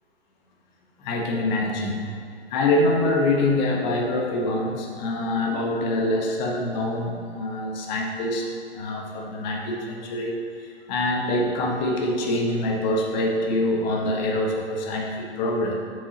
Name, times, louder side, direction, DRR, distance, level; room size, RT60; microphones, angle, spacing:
voice 1, 1.0-2.1 2.5-8.5 8.7-15.8, left 1 dB, 45° left, 0 dB, 1.3 m, -25 dB
8.0 x 6.4 x 2.9 m, 2.5 s
hypercardioid pair, 120°, 32 cm